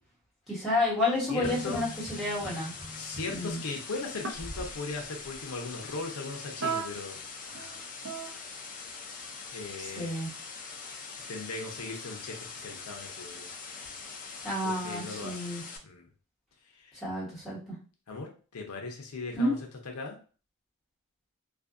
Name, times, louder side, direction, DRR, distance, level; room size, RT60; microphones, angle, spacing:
voice 1, 0.5-2.7 3.3-3.6 9.8-10.3 14.4-15.6 17.0-17.6 19.3-19.5, left 1 dB, ahead, -9 dB, 1.4 m, -30 dB
voice 2, 1.3-1.8 2.9-7.2 7.5-7.8 9.5-10.2 11.3-13.5 14.6-15.5 15.8-16.1 16.7-17.0 18.1-19.6 19.8-20.2, left 3 dB, 80° left, 2 dB, 0.6 m, -38 dB
sound 1, 1.3-4.8 5.2-5.4, equal, 15° right, 0.8 m, -43 dB
sound 2, 1.4-15.8, left 5 dB, 35° left, 0.4 m, -43 dB
sound 3, 2.4-2.6 3.2-3.6 4.2-4.6 6.6-7.1 7.4-8.3, right 6 dB, 60° right, 0.6 m, -35 dB
2.5 x 2.5 x 2.4 m, 0.38 s
head